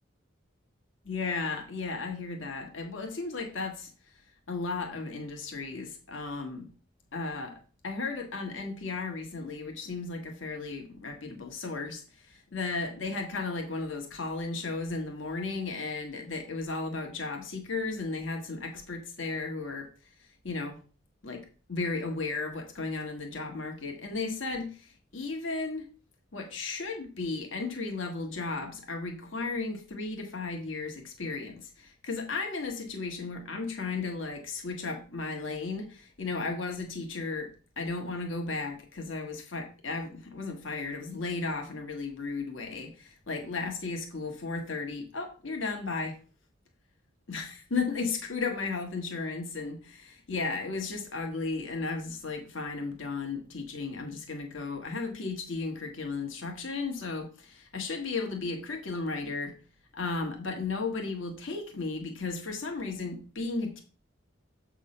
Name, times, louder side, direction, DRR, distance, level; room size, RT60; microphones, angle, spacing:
voice 1, 1.0-3.9 4.5-6.7 7.1-19.9 20.4-20.8 21.2-25.9 26.3-37.5 37.8-46.1 47.3-59.5 59.9-63.8, left 3 dB, 85° left, 3 dB, 1.5 m, -35 dB
7.6 x 3.7 x 5.4 m, 0.37 s
head